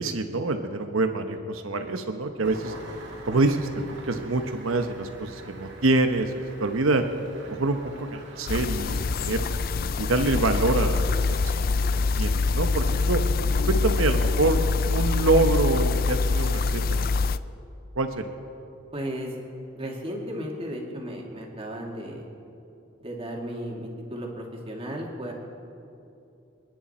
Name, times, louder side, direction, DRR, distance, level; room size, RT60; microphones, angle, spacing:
voice 1, 0.0-2.7 3.2-7.0 7.5-9.4 10.0-11.5 12.2-13.2 13.7-14.6 14.9-17.1 18.0-18.3, right 2 dB, 80° right, 7 dB, 0.9 m, -26 dB
Engine starting, 2.4-12.2, right 2 dB, 60° right, 2.3 m, -45 dB
sound 1, 8.5-17.4, left 4 dB, 45° left, 0.4 m, -24 dB
voice 2, 18.9-19.4 19.7-22.3 23.0-25.3, equal, 30° right, -1 dB, 2.3 m, -34 dB
29.5 x 10.0 x 4.3 m, 2.8 s
head